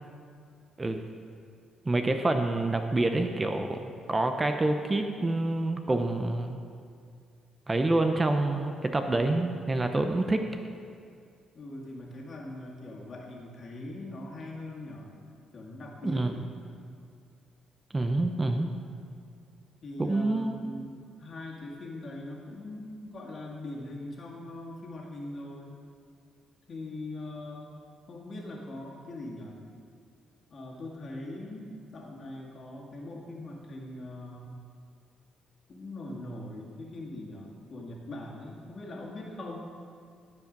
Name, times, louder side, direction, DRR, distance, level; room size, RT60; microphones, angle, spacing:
voice 1, 1.9-3.8 4.1-6.6 7.7-10.4 16.0-16.3 17.9-18.7 20.0-20.5, right 2 dB, 20° right, 6 dB, 0.6 m, -27 dB
voice 2, 11.5-15.1 15.5-16.6 19.8-25.8 26.7-27.8 28.1-29.6 30.5-34.6 35.7-39.7, left 1 dB, 50° left, -2 dB, 2.1 m, -41 dB
15.0 x 5.2 x 5.3 m, 2.2 s
cardioid pair, 90°, 0 cm